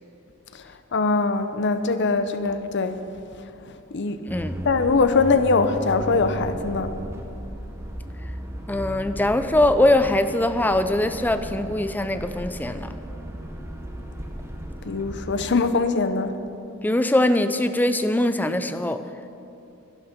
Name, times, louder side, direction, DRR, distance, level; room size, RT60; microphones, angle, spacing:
voice 1, 0.9-3.0 3.9-4.2 4.6-6.9 14.9-16.4, left 4 dB, 55° left, 10 dB, 0.7 m, -22 dB
sound 1, 4.3-15.5, equal, 15° right, 1.0 m, -35 dB
voice 2, 8.7-13.0 16.8-19.0, left 1 dB, 10° left, 10 dB, 0.5 m, -22 dB
11.5 x 11.5 x 5.2 m, 2.8 s
head